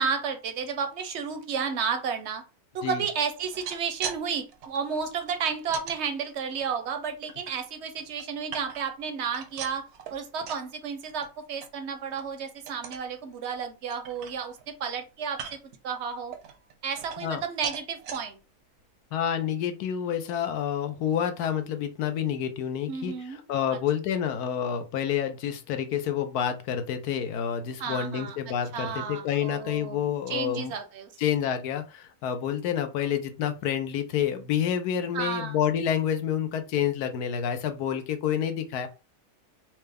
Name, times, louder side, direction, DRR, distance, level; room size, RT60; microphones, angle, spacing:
voice 1, 0.0-2.4 2.7-15.6 15.8-16.3 16.8-18.4 22.9-23.4 23.7-23.8 27.8-28.4 28.7-30.0 30.3-31.1 35.1-35.6, right 6 dB, 60° right, 7 dB, 0.7 m, -32 dB
sound 1, 3.4-4.2 4.5-6.0 6.5-7.5 8.0-9.0 9.3-10.7 11.0-11.3 11.6-11.7 12.1-12.3 12.7-13.1 13.5-13.6 13.9-14.7 15.3-15.8 16.3-17.4 17.6-18.2 18.8-18.9 19.2-19.3, right 8 dB, 85° right, 1.2 m, -40 dB
voice 2, 19.1-30.7 31.2-38.9, left 9 dB, 85° left, 8 dB, 1.2 m, -28 dB
4.5 x 2.1 x 3.3 m, 0.31 s
omnidirectional pair, 1.6 m